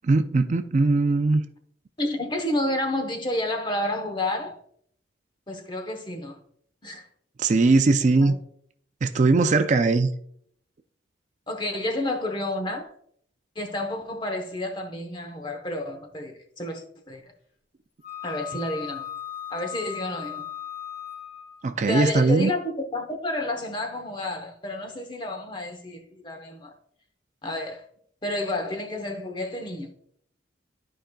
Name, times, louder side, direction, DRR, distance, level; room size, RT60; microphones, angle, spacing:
voice 1, 0.0-1.4 7.4-8.4 9.0-10.1 21.6-22.5, right 3 dB, 40° right, 0.4 m, -20 dB
voice 2, 2.0-4.6 5.5-6.4 6.8-7.1 8.2-8.4 11.5-12.9 13.6-17.2 18.2-19.0 19.5-20.4 21.9-26.7 27.4-27.8 28.2-29.9, left 1 dB, 25° left, 1.0 m, -30 dB
Wind instrument woodwind instrument, 18.0-21.6, left 10 dB, 60° left, 3.0 m, -37 dB
13.0 x 5.0 x 2.3 m
head